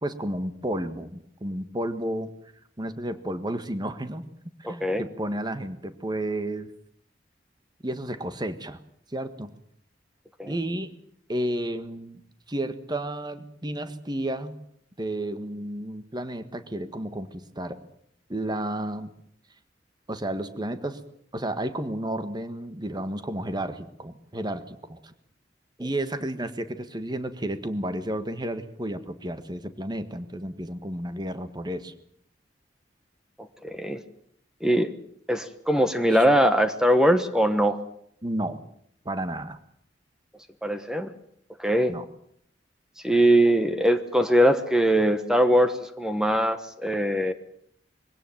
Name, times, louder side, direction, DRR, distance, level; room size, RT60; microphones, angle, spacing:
voice 1, 0.0-2.3 2.8-4.2 4.6-6.7 7.8-8.8 9.1-9.5 10.4-10.9 11.3-12.2 12.5-14.5 15.0-17.8 18.3-19.1 20.1-21.0 21.3-25.1 25.8-31.9 36.1-36.2 38.2-38.6 39.0-39.6 41.9-42.0, right 1 dB, 25° right, 10 dB, 1.6 m, -32 dB
voice 2, 4.6-5.0 10.4-10.5 33.6-34.0 34.6-34.9 35.3-37.8 40.6-41.1 41.6-41.9 43.0-47.3, equal, 5° right, 8 dB, 1.3 m, -21 dB
23.0 x 17.0 x 9.2 m, 0.69 s
head